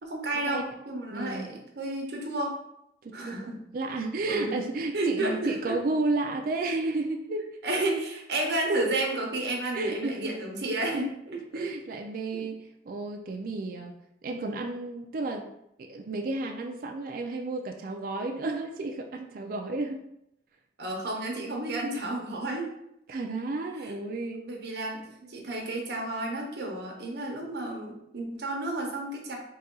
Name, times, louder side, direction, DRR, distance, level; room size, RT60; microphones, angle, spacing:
voice 1, 0.0-2.6 3.1-3.6 4.3-4.5 4.9-5.8 7.6-11.7 20.8-22.7 23.8-23.9 24.4-25.0 25.3-29.4, right 2 dB, 70° right, 0 dB, 0.9 m, -31 dB
voice 2, 1.1-1.5 3.0-7.5 9.7-10.3 10.9-11.0 11.5-12.6 12.9-13.9 14.2-15.5 15.8-20.0 23.1-24.4 25.2-25.3, right 2 dB, 50° right, 2 dB, 0.4 m, -32 dB
4.0 x 2.3 x 3.7 m, 0.78 s
head